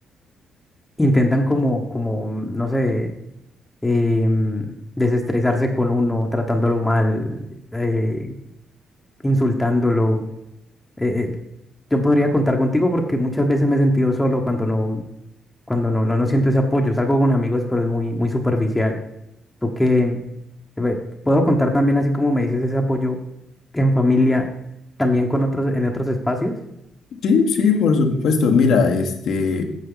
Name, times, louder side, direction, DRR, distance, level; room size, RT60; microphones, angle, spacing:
voice 1, 1.0-3.1 3.8-4.6 5.0-7.4 7.7-8.3 9.2-10.2 11.0-11.4 11.9-15.0 15.7-19.0 19.6-20.2 20.8-21.0 21.2-23.2 23.7-24.5 25.0-26.5, left 1 dB, 10° left, 2 dB, 1.1 m, -20 dB
voice 2, 27.2-29.6, left 5 dB, 70° left, 5 dB, 1.3 m, -18 dB
8.8 x 6.8 x 3.9 m, 0.82 s
cardioid pair, 90°, 0 cm